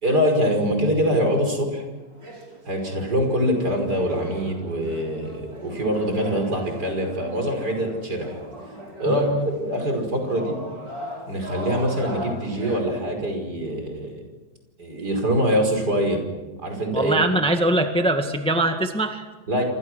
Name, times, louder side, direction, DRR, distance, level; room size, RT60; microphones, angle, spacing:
voice 1, 0.0-1.8 2.7-8.4 9.0-10.6 11.3-14.2 14.8-16.2 16.6-17.2 19.5-19.6, equal, 65° right, 4 dB, 6.0 m, -24 dB
sound 1, 1.9-12.8, equal, 80° right, 5.7 m, -39 dB
voice 2, 9.0-9.5 16.9-19.3, right 1 dB, 5° left, 5 dB, 1.7 m, -22 dB
29.0 x 26.5 x 6.4 m, 1.2 s
omnidirectional pair, 1.9 m